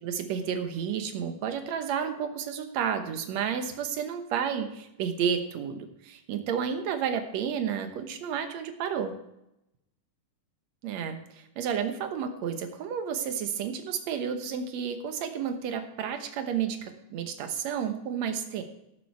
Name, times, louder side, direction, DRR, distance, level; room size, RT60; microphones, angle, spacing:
voice 1, 0.0-9.1 10.8-18.6, right 7 dB, 65° right, 7 dB, 2.2 m, -31 dB
16.5 x 7.0 x 4.6 m, 0.85 s
omnidirectional pair, 3.6 m